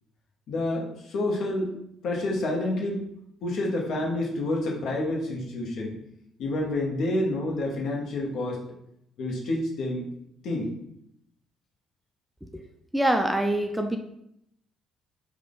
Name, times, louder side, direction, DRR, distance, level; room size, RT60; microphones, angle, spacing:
voice 1, 0.5-1.7 2.0-3.0 3.4-6.0 6.4-8.6 9.2-10.0 10.4-10.8, left 1 dB, 55° left, -2 dB, 0.9 m, -28 dB
voice 2, 12.9-14.0, right 1 dB, 5° right, 4 dB, 0.4 m, -24 dB
4.8 x 2.2 x 3.7 m, 0.76 s
figure-of-eight pair, 45°, 0 cm